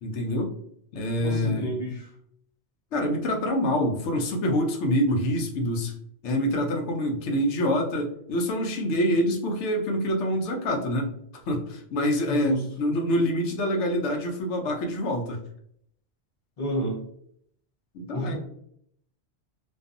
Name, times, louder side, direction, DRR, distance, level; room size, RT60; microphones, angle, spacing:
voice 1, 0.0-0.5 0.9-1.7 2.9-5.9 6.2-11.1 11.5-15.4 17.9-18.4, equal, 85° left, 2 dB, 0.9 m, -26 dB
voice 2, 1.2-2.1 12.3-12.6 16.6-17.0 18.1-18.4, right 1 dB, 45° left, 1 dB, 0.5 m, -29 dB
2.5 x 2.3 x 2.4 m, 0.68 s
omnidirectional pair, 1.2 m